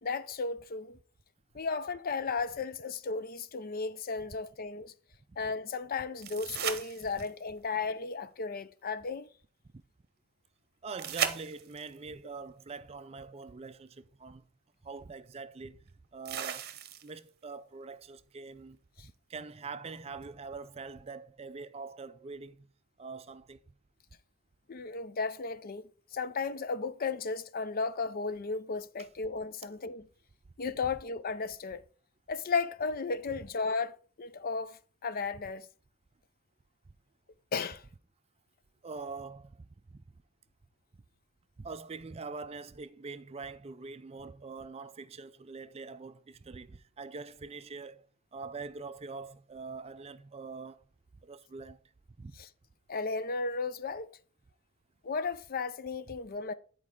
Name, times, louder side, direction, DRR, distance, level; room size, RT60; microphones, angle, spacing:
voice 1, 0.0-1.0 1.5-4.9 5.4-9.3 24.7-30.1 30.6-31.8 32.3-35.7 37.5-37.8 52.4-52.5 52.9-54.1 55.0-56.5, left 4 dB, 40° left, 0.5 m, -34 dB
sound 1, 6.2-7.5 11.0-12.0 13.9-14.0 16.3-17.3 20.2-20.3, right 8 dB, 45° right, 0.9 m, -36 dB
voice 2, 10.8-14.4 14.8-15.8 16.1-16.7 17.0-18.8 19.0-22.7 23.0-23.6 38.8-40.0 41.6-48.1 48.3-50.8 51.2-51.8 52.2-52.4, right 4 dB, 30° right, 0.4 m, -44 dB
9.8 x 4.6 x 4.8 m
head